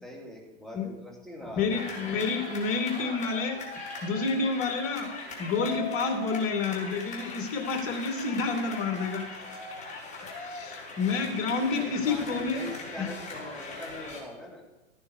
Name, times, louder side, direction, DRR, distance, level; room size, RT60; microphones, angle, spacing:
voice 1, 0.0-2.1 11.7-14.6, left 1 dB, ahead, -3 dB, 2.9 m, -42 dB
voice 2, 1.6-9.4 10.4-12.6 13.0-13.1, left 4 dB, 35° left, 5 dB, 2.4 m, -29 dB
sound 1, 1.7-14.2, left 3 dB, 20° left, 4.0 m, -40 dB
14.0 x 9.8 x 4.8 m, 1.0 s
hypercardioid pair, 115°, 39 cm